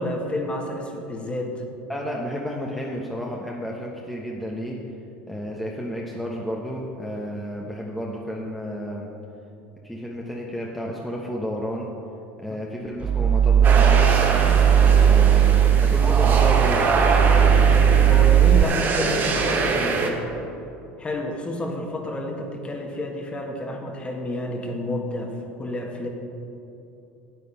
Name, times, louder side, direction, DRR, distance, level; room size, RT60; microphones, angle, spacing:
voice 1, 0.0-1.6 18.1-20.3 21.0-26.1, left 1 dB, 20° left, 2 dB, 1.7 m, -30 dB
voice 2, 1.9-4.8 5.3-9.1 9.8-11.9 12.4-14.1 15.0-16.8, equal, 5° left, -2 dB, 1.1 m, -32 dB
sound 1, 13.0-18.6, right 9 dB, 25° right, 0.3 m, -17 dB
church wien, 13.6-20.1, right 4 dB, 40° right, 1.5 m, -24 dB
9.5 x 8.3 x 5.6 m, 2.8 s
supercardioid pair, 95°, 5 cm